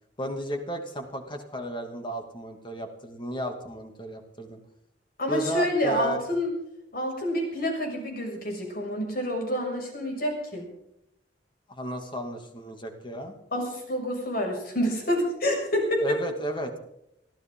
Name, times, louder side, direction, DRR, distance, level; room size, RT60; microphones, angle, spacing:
voice 1, 0.2-4.6 5.3-6.2 11.7-13.3 16.0-16.7, right 1 dB, 30° left, 5 dB, 2.6 m, -33 dB
voice 2, 5.2-6.5 6.9-10.6 13.5-16.2, equal, 55° left, 2 dB, 6.5 m, -28 dB
24.0 x 15.5 x 3.9 m, 0.79 s
head